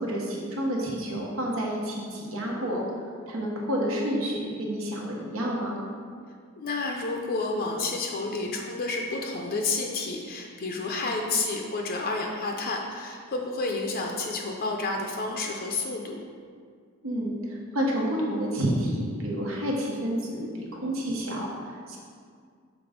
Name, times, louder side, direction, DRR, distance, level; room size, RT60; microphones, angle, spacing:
voice 1, 0.0-2.8 3.3-5.8 17.0-22.0, equal, 80° right, -2 dB, 1.2 m, -29 dB
voice 2, 6.6-16.2, left 3 dB, 45° left, 1 dB, 0.5 m, -30 dB
6.0 x 3.8 x 5.0 m, 2.1 s
head